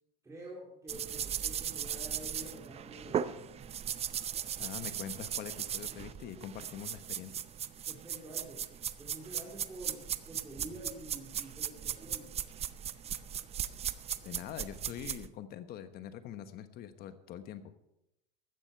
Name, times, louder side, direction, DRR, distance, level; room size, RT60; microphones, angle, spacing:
voice 1, 0.2-3.7 7.9-8.7 9.0-12.3, right 1 dB, 15° right, -5 dB, 4.0 m, -48 dB
sound 1, 0.9-15.3, right 9 dB, 30° right, 0.7 m, -38 dB
voice 2, 4.6-7.3 14.2-17.8, left 10 dB, 50° left, 11 dB, 1.3 m, -44 dB
16.0 x 12.5 x 4.6 m, 0.86 s
supercardioid pair, 105°, 21 cm